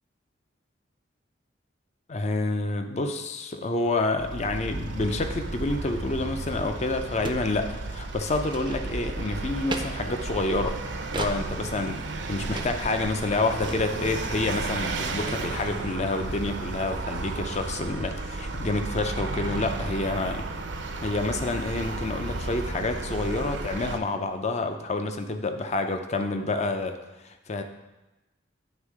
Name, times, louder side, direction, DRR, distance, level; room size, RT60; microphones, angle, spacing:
voice 1, 2.1-10.8 11.1-12.0 12.3-20.5 21.0-27.0 27.2-27.6, left 2 dB, 35° left, 7 dB, 0.5 m, -28 dB
Vehicle, 4.2-24.0, right 2 dB, 70° right, 0.6 m, -33 dB
sound 1, 6.5-6.6 6.8-6.9 7.2-7.5 7.8-8.0 8.4-9.1 9.7-9.9 11.1-11.4 11.9-12.0 12.5-12.7 13.0-13.1 13.2-13.4 13.6-13.8, right 3 dB, 25° right, 0.5 m, -34 dB
9.4 x 3.6 x 4.8 m, 1.0 s
head